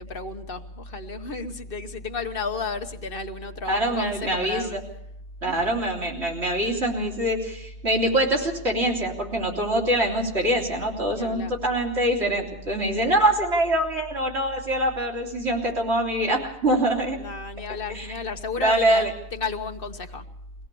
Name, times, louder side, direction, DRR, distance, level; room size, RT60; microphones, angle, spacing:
voice 1, 0.0-4.8 5.4-5.7 11.1-11.6 17.0-20.2, left 4 dB, 60° left, 7 dB, 1.3 m, -33 dB
voice 2, 3.6-4.8 5.4-17.2 17.9-18.1 18.6-19.1, right 1 dB, 80° right, -1 dB, 3.5 m, -24 dB
22.5 x 17.0 x 6.9 m, 0.78 s
omnidirectional pair, 1.1 m